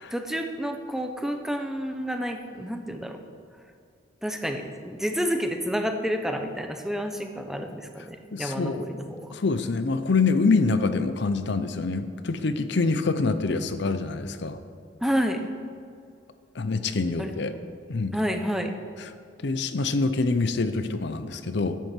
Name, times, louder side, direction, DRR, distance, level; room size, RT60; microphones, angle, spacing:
voice 1, 0.1-3.2 4.2-9.3 15.0-15.4 17.2-17.3 18.1-18.7, equal, ahead, 5 dB, 0.7 m, -29 dB
voice 2, 8.0-8.9 9.3-14.6 16.5-17.5 17.9-18.1 19.0-19.1 19.4-21.8, left 3 dB, 60° left, 10 dB, 0.6 m, -26 dB
10.0 x 8.2 x 7.5 m, 2.3 s
head